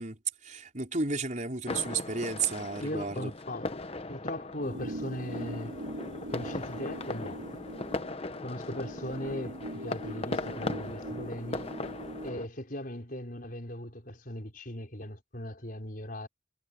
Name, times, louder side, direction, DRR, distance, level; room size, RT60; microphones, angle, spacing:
voice 1, 0.0-3.3, right 4 dB, 40° right, 4.9 m, -33 dB
sound 1, 1.7-12.5, left 2 dB, 30° left, 0.9 m, -38 dB
voice 2, 2.8-5.8 6.3-7.5 8.4-11.7 12.2-16.3, left 1 dB, 45° left, 5.2 m, -39 dB
sound 2, 4.6-12.5, right 1 dB, 80° right, 2.9 m, -41 dB
head